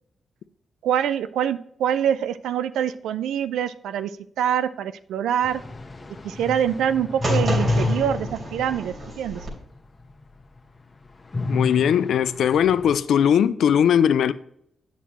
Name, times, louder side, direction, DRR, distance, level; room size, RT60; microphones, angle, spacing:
voice 1, 0.8-4.1 4.4-5.6 6.2-9.5, right 9 dB, 85° right, 0.4 m, -25 dB
sound 1, 5.4-9.7 10.1-10.2 11.3-13.0, left 2 dB, 30° left, 1.0 m, -29 dB
sound 2, 7.2-9.5, right 2 dB, 55° right, 3.1 m, -30 dB
voice 2, 11.5-14.3, left 9 dB, 75° left, 0.4 m, -19 dB
8.1 x 6.2 x 3.0 m
supercardioid pair, 50°, 0 cm